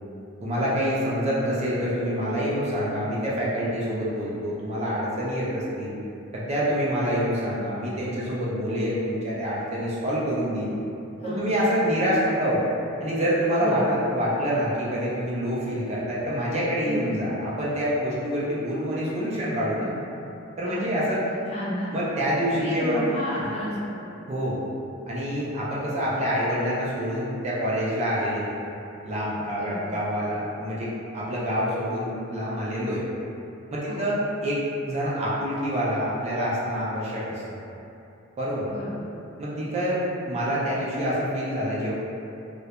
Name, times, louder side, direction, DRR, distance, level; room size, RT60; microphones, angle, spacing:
voice 1, 0.4-6.0 6.3-10.7 11.2-12.6 13.0-19.9 20.6-21.2 21.9-23.0 24.3-24.6 25.1-28.5 29.0-33.0 33.7-37.4 38.4-38.7 39.4-41.9, equal, 30° right, -7 dB, 0.4 m, -26 dB
voice 2, 11.2-11.6 13.6-13.9 16.8-17.2 20.6-21.1 21.5-21.9 22.6-24.1 29.5-29.9 33.9-34.2 38.7-39.1, equal, 30° left, -9 dB, 0.6 m, -32 dB
2.3 x 2.1 x 2.8 m, 2.8 s
head